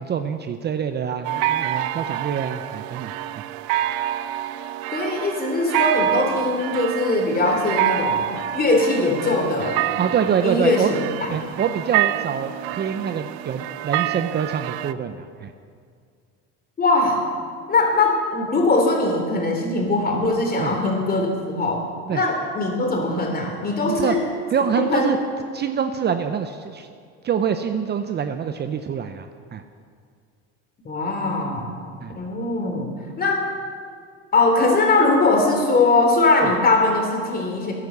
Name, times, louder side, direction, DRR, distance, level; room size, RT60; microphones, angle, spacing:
voice 1, 0.0-3.1 10.0-10.9 11.3-15.5 20.6-20.7 22.1-22.2 23.9-24.2 24.5-25.2 25.5-26.9 27.2-29.6 32.0-32.1, right 7 dB, 30° right, 8 dB, 0.7 m, -25 dB
sound 1, 1.2-14.9, right 13 dB, 80° right, 0.6 m, -27 dB
voice 2, 4.9-8.3 8.5-9.8 10.4-11.3 16.8-17.2 17.7-21.8 22.1-24.2 24.8-25.2 30.8-31.7 32.2-32.9 33.2-33.4 34.3-37.7, left 2 dB, 30° left, 2 dB, 3.4 m, -21 dB
15.0 x 11.0 x 6.8 m, 2.1 s
supercardioid pair, 110°, 32 cm